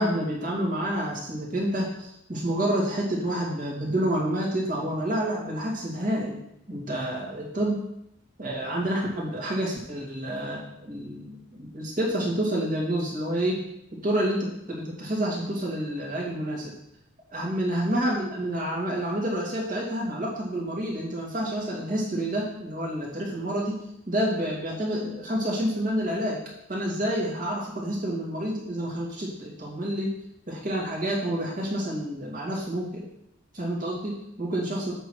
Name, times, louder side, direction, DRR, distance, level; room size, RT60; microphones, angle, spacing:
voice 1, 0.0-6.4 6.7-7.8 8.4-13.6 14.0-16.7 17.3-26.4 26.7-30.1 30.5-33.0 33.5-34.9, right 1 dB, 40° right, -3 dB, 2.4 m, -28 dB
8.0 x 4.7 x 6.2 m, 0.80 s
head